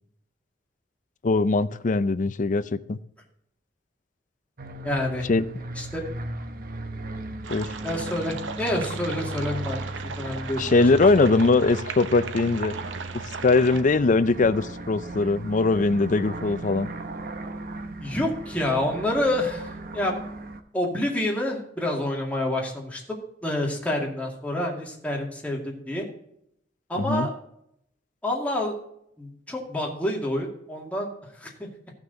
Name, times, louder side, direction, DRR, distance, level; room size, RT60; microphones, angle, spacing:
voice 1, 1.2-2.6 2.9-3.0 5.3-5.4 7.5-7.7 10.6-12.7 13.4-16.9 27.0-27.3, left 3 dB, 45° left, 14 dB, 0.5 m, -21 dB
sound 1, 4.6-20.6, right 2 dB, 50° right, 0.9 m, -37 dB
voice 2, 4.8-5.3 5.8-6.0 7.8-9.8 10.2-11.4 18.0-20.2 20.7-23.0 23.4-26.1 26.9-27.3 28.2-28.7 29.2-31.1 31.4-31.7, left 1 dB, 10° left, -1 dB, 2.1 m, -28 dB
sound 2, 7.4-13.8, right 5 dB, 85° right, 0.8 m, -37 dB
14.5 x 6.0 x 3.9 m, 0.75 s
head